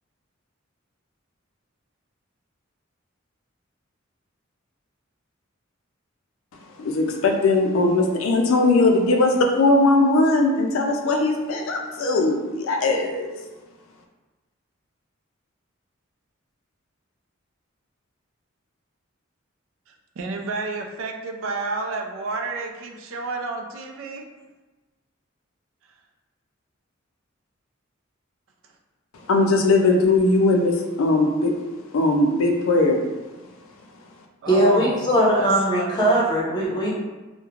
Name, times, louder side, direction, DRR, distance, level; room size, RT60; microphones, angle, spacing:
voice 1, 6.8-13.3 29.3-31.5 31.9-33.0, left 2 dB, 80° left, 3 dB, 0.4 m, -19 dB
voice 2, 20.2-24.3 34.4-35.0 35.4-36.2, right 3 dB, 70° right, 2 dB, 0.4 m, -30 dB
voice 3, 34.5-36.9, right 1 dB, 20° left, -6 dB, 0.7 m, -20 dB
3.0 x 2.1 x 2.3 m, 1.2 s
head